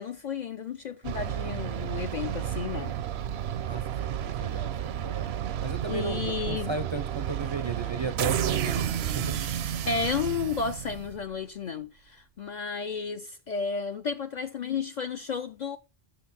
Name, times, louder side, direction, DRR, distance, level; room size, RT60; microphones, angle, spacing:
voice 1, 0.0-3.0 5.9-6.8 9.8-15.8, left 5 dB, 55° left, 0.5 m, -32 dB
sound 1, 1.0-11.3, right 10 dB, 75° right, 0.8 m, -31 dB
voice 2, 3.6-5.3 5.6-9.5, right 4 dB, 40° right, 0.4 m, -35 dB
7.6 x 6.1 x 4.1 m
omnidirectional pair, 1.1 m